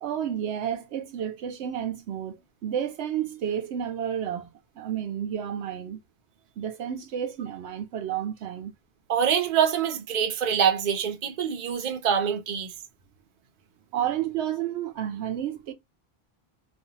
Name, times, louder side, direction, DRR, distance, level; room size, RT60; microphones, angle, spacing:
voice 1, 0.0-2.4 2.6-6.0 6.6-8.7 13.9-15.7, right 9 dB, 90° right, 0.9 m, -31 dB
voice 2, 9.1-12.7, right 8 dB, 50° right, 0.6 m, -25 dB
2.5 x 2.4 x 2.8 m
omnidirectional pair, 1.1 m